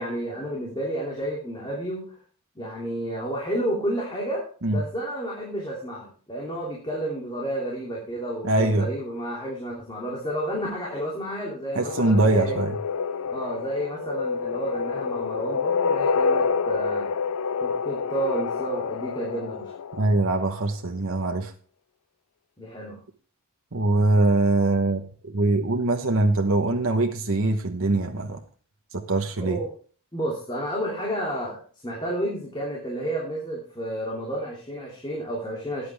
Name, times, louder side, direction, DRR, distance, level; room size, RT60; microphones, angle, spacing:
voice 1, 0.0-2.2 2.5-12.6 13.2-17.1 17.6-19.7 22.6-23.0 29.4-29.7 30.1-35.9, right 1 dB, 20° left, -4 dB, 3.0 m, -31 dB
voice 2, 8.4-8.9 11.8-12.7 20.0-21.5 23.7-28.4 28.9-29.6, right 2 dB, 65° right, 4 dB, 1.1 m, -23 dB
sound 1, 11.9-20.5, left 5 dB, 85° left, 0.4 m, -28 dB
14.0 x 10.0 x 3.5 m, 0.41 s
head